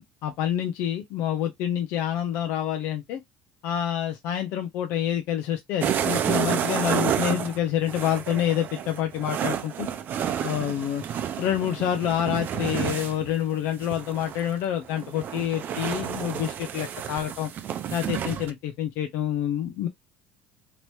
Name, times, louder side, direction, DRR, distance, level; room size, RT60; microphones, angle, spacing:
voice 1, 0.0-3.2 3.6-9.9 10.4-11.0 11.4-17.5 17.9-19.9, left 10 dB, 65° left, 0.5 m, -27 dB
sound 1, 5.8-14.5 14.8-18.5, right 9 dB, 50° right, 0.6 m, -30 dB
3.0 x 2.9 x 2.9 m
supercardioid pair, 85°, 4 cm